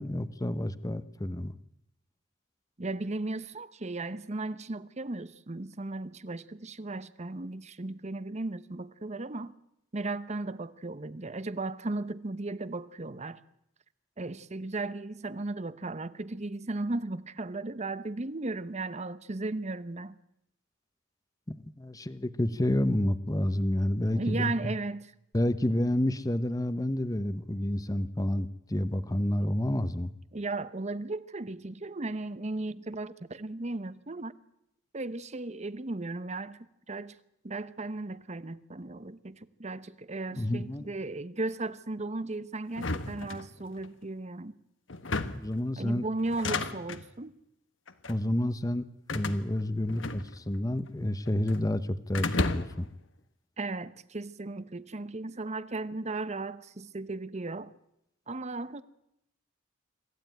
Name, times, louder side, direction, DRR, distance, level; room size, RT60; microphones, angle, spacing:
voice 1, 0.0-1.5 21.5-24.7 25.3-30.1 40.3-40.9 45.2-46.1 48.1-48.8 49.1-52.9, left 1 dB, 20° left, 0.9 m, -29 dB
voice 2, 2.8-9.5 9.9-13.4 14.2-20.1 24.0-25.1 30.3-34.3 34.9-36.6 36.9-37.2 37.4-44.5 45.8-47.4 53.6-57.7 58.3-58.8, right 2 dB, 35° right, 0.9 m, -36 dB
sound 1, 42.7-43.9 44.9-45.6 46.2-47.1 47.9-48.3 49.1-50.6 50.9-51.6 52.1-52.9, left 3 dB, 75° left, 1.4 m, -33 dB
26.0 x 15.0 x 9.3 m
head